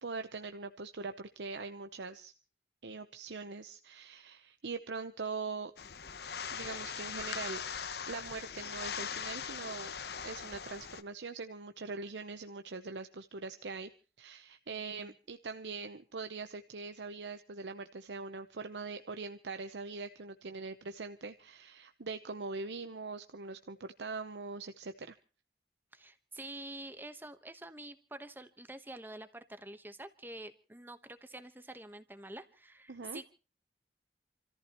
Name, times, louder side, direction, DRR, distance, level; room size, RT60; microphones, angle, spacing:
voice 1, 0.0-2.3 2.8-5.7 6.5-7.6 8.0-9.9 10.2-13.9 14.2-25.1 32.9-33.2, right 4 dB, 90° right, 8 dB, 0.8 m, -42 dB
sound 1, 5.8-11.0, left 7 dB, 65° left, 0.9 m, -40 dB
voice 2, 14.7-15.1 25.9-33.3, right 1 dB, 10° right, 10 dB, 1.2 m, -47 dB
28.5 x 14.5 x 3.0 m, 0.37 s
head